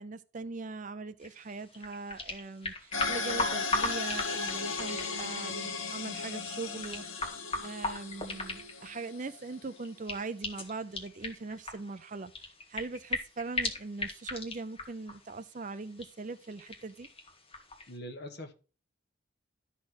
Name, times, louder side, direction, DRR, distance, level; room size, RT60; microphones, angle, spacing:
voice 1, 0.0-17.1, right 3 dB, 35° right, 0.5 m, -41 dB
sound 1, 1.2-18.0, left 2 dB, 30° left, 1.8 m, -39 dB
sound 2, 2.9-9.5, left 4 dB, 70° left, 1.3 m, -36 dB
voice 2, 17.9-18.5, equal, 50° left, 1.5 m, -42 dB
12.5 x 4.2 x 6.2 m
head